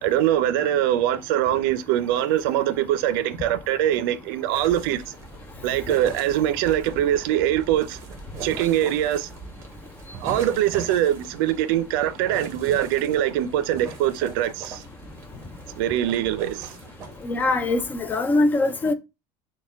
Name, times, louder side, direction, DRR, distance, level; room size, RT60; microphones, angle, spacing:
voice 1, 0.0-5.1 5.6-8.0 8.4-9.3 10.2-14.8 15.7-16.8, right 12 dB, 85° right, 0.4 m, -23 dB
sound 1, 4.5-18.0, right 4 dB, 25° right, 0.9 m, -40 dB
voice 2, 17.2-18.9, left 2 dB, 15° left, 0.3 m, -22 dB
4.3 x 2.2 x 3.3 m
cardioid pair, 160°, 11 cm